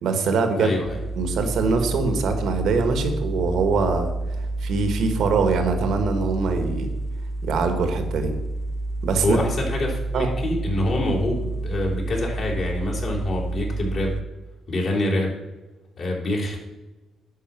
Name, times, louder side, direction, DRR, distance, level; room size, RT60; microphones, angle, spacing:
voice 1, 0.0-0.7 1.2-4.1 4.6-6.9 7.4-8.3 9.0-9.4 10.1-10.3, right 4 dB, 75° right, 7 dB, 1.5 m, -23 dB
voice 2, 0.6-1.0 9.2-14.1 14.7-15.3 16.0-16.6, left 1 dB, 55° left, -3 dB, 3.3 m, -25 dB
sound 1, 0.8-14.2, right 2 dB, 25° left, 0.9 m, -29 dB
11.0 x 4.2 x 7.4 m, 1.1 s
cardioid pair, 90°, 0 cm